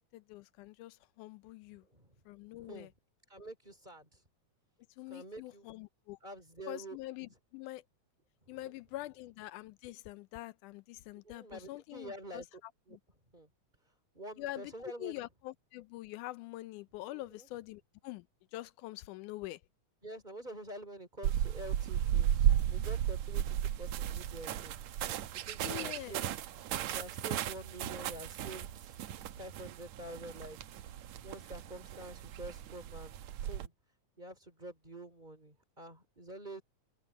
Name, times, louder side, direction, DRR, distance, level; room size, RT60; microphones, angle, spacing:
voice 1, 0.0-1.8 2.3-2.9 5.0-6.2 6.7-7.8 8.5-12.4 12.9-13.0 14.4-14.7 15.0-18.3 18.5-19.6 25.6-26.3, left 17 dB, 85° left, 2.1 m, -45 dB
voice 2, 1.7-2.2 2.6-2.9 3.3-4.2 5.1-5.7 6.2-7.3 8.4-8.7 11.1-12.5 12.9-13.0 13.3-13.5 14.1-15.2 17.1-17.5 20.0-26.2 26.9-29.0 29.4-30.6 31.2-33.1 33.4-33.7 34.2-36.6, right 1 dB, 15° right, 2.8 m, -48 dB
sound 1, 21.2-33.7, right 11 dB, 70° right, 2.1 m, -35 dB
open air
omnidirectional pair, 3.5 m